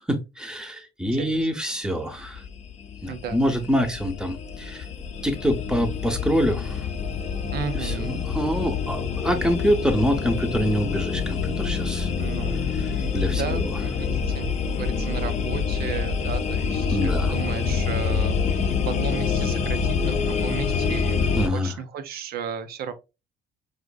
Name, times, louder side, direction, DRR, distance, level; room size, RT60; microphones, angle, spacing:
voice 1, 0.0-2.4 3.0-4.9 5.2-6.9 7.8-12.1 13.1-13.7 16.9-17.3 21.4-21.7, equal, 5° right, 0.7 m, -25 dB
voice 2, 1.1-1.5 3.1-3.4 7.5-8.2 12.2-21.2 21.5-22.9, right 7 dB, 65° right, 0.6 m, -35 dB
sound 1, 2.2-21.5, left 5 dB, 40° left, 0.5 m, -26 dB
4.9 x 2.5 x 2.2 m
cardioid pair, 110°, 17 cm